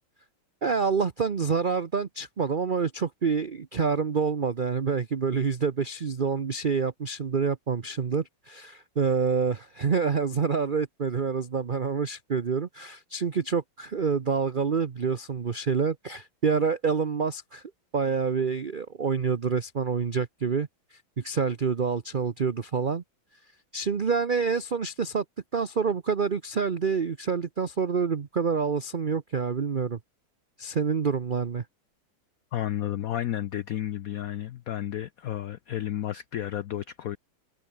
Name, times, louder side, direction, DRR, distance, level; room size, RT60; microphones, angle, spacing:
voice 1, 0.6-17.6 17.9-20.7 21.2-23.0 23.7-25.2 25.5-30.0 30.6-31.6, right 5 dB, 55° right, 0.5 m, -27 dB
voice 2, 32.5-37.2, left 12 dB, 85° left, 0.7 m, -32 dB
omnidirectional pair, 2.3 m